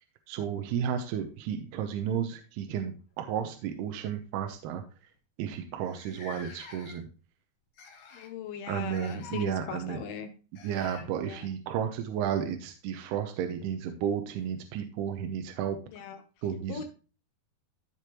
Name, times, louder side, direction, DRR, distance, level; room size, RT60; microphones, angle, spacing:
voice 1, 0.3-4.8 5.4-7.1 8.7-10.0 10.6-15.8 16.4-16.8, right 8 dB, 80° right, 6 dB, 2.7 m, -32 dB
sound 1, 1.2-2.4 3.4-3.6 4.0-4.2 4.9-5.0 5.1-5.2 5.8-7.2 7.8-8.4 8.9-9.5 10.5-11.1 13.2-13.3 14.4-14.5, left 5 dB, 55° left, 1.7 m, -48 dB
voice 2, 8.1-10.3 11.2-11.5 15.9-16.2 16.7-16.8, left 7 dB, 75° left, 7 dB, 2.7 m, -40 dB
14.5 x 5.1 x 3.0 m, 0.35 s
omnidirectional pair, 4.8 m